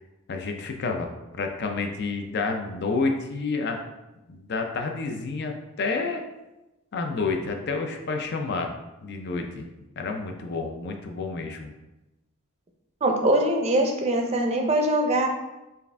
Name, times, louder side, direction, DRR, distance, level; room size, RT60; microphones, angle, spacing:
voice 1, 0.3-3.8 4.3-6.2 6.9-8.7 9.0-9.7 10.0-11.7, left 4 dB, 50° left, 4 dB, 0.5 m, -29 dB
voice 2, 13.0-15.3, right 1 dB, 30° right, 3 dB, 0.5 m, -22 dB
4.7 x 2.5 x 3.3 m, 1.0 s
head